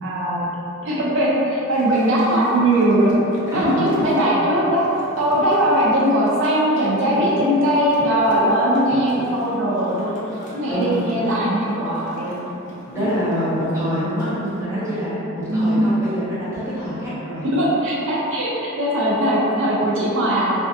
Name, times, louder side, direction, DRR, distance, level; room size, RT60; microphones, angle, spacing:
voice 1, 0.0-0.5 0.8-3.2 3.5-4.8 5.2-10.2 10.5-12.4 15.5-15.8 17.4-20.5, right 1 dB, 65° right, -6 dB, 0.4 m, -20 dB
sound 1, 1.7-14.6, left 1 dB, 35° left, 0.4 m, -40 dB
voice 2, 3.5-3.9 7.0-7.3 10.7-11.2 12.9-17.5, equal, 15° right, -11 dB, 0.6 m, -25 dB
2.5 x 2.4 x 2.2 m, 2.8 s
head